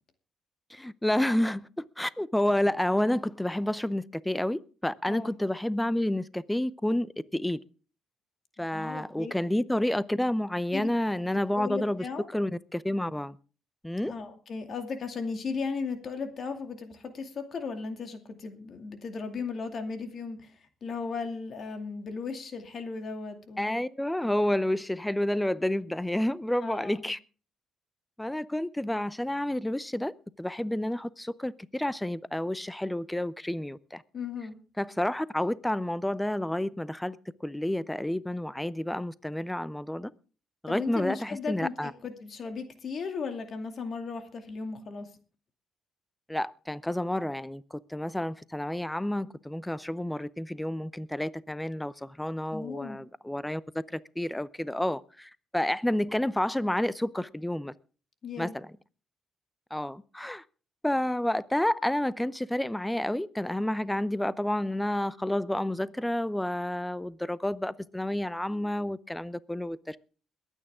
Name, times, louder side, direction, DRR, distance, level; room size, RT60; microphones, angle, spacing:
voice 1, 0.7-7.6 8.6-13.4 13.8-14.1 23.6-27.2 28.2-34.0 34.8-40.1 40.6-41.9 46.3-53.6 53.9-57.7 58.4-58.7 59.7-60.4 60.8-70.0, left 1 dB, 5° left, 0.6 m, -30 dB
voice 2, 8.7-9.3 10.7-10.9 11.5-12.3 14.0-20.5 20.8-23.7 26.6-27.1 34.1-34.6 40.7-45.1 52.5-53.0 58.2-58.5, left 4 dB, 55° left, 2.4 m, -36 dB
22.0 x 9.1 x 3.6 m
cardioid pair, 90°, 0 cm